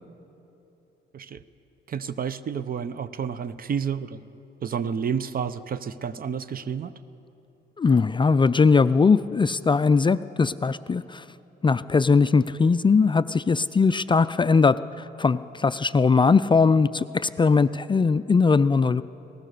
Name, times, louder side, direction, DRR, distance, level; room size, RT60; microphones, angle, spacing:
voice 1, 1.9-4.2 4.6-6.9, right 7 dB, 45° right, 15 dB, 0.8 m, -30 dB
voice 2, 7.8-11.2 11.6-19.0, left 4 dB, 25° left, 13 dB, 0.4 m, -20 dB
24.0 x 18.0 x 6.7 m, 3.0 s
cardioid pair, 90°, 20 cm